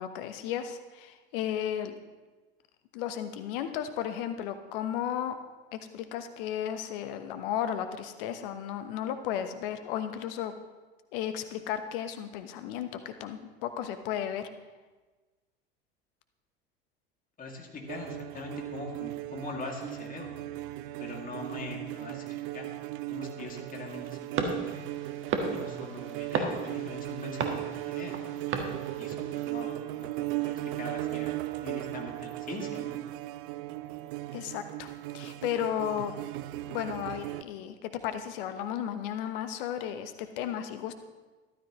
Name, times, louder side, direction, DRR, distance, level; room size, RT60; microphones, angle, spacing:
voice 1, 0.0-2.0 2.9-5.4 5.7-10.5 11.1-14.5 34.3-36.1 36.7-40.9, left 9 dB, 65° left, 9 dB, 1.1 m, -34 dB
voice 2, 17.4-20.4 21.0-22.3 22.5-22.7 23.1-24.7 25.5-28.2 29.0-31.3 31.6-33.0, left 3 dB, 30° left, 0 dB, 2.5 m, -42 dB
sound 1, 17.9-37.4, right 16 dB, 60° right, 0.5 m, -37 dB
sound 2, 24.3-29.5, right 4 dB, 45° right, 1.6 m, -35 dB
14.0 x 12.0 x 3.1 m, 1.3 s
hypercardioid pair, 75°, 30 cm